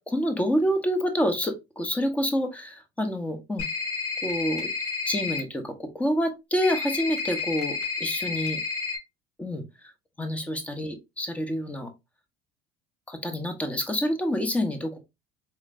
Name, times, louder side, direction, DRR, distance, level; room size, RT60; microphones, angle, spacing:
voice 1, 0.1-3.6 4.2-4.7 5.0-8.6 9.4-9.9 10.2-11.9 13.1-15.0, equal, 10° left, 0.9 m, -28 dB
sound 1, 3.6-5.4 6.6-9.0, left 4 dB, 80° left, 2.2 m, -30 dB
4.3 x 3.2 x 2.4 m
cardioid pair, 120°, 13 cm